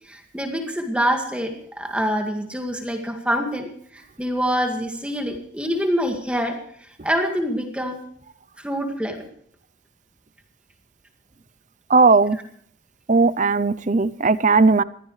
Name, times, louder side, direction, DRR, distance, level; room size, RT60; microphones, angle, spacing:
voice 1, 0.1-6.6 7.0-8.0 8.6-9.2, equal, 5° right, 3 dB, 2.0 m, -25 dB
voice 2, 11.9-12.4 13.1-14.8, right 4 dB, 40° right, 17 dB, 0.6 m, -17 dB
21.5 x 15.5 x 3.3 m, 0.65 s
head